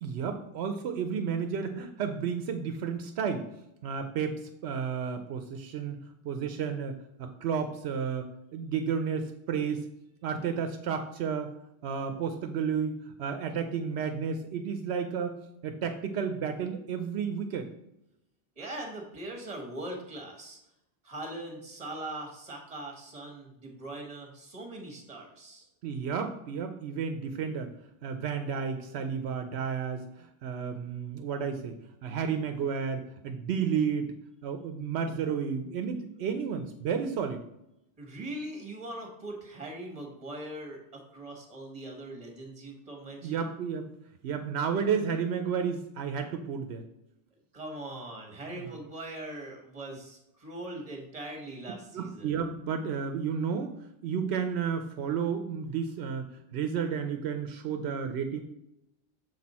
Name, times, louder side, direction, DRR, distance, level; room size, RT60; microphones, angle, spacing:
voice 1, 0.0-3.4 3.8-6.0 6.2-9.9 10.2-11.5 11.8-15.4 15.6-17.7 25.8-27.7 28.0-31.8 32.0-34.1 34.4-37.4 43.2-43.9 44.2-46.8 48.5-48.6 51.9-53.8 54.0-58.4, right 6 dB, 80° right, 6 dB, 0.8 m, -32 dB
voice 2, 18.6-20.6 21.0-25.7 38.0-43.5 47.5-52.3, right 1 dB, 35° right, 2 dB, 1.4 m, -41 dB
6.6 x 4.3 x 4.1 m, 0.84 s
omnidirectional pair, 1.1 m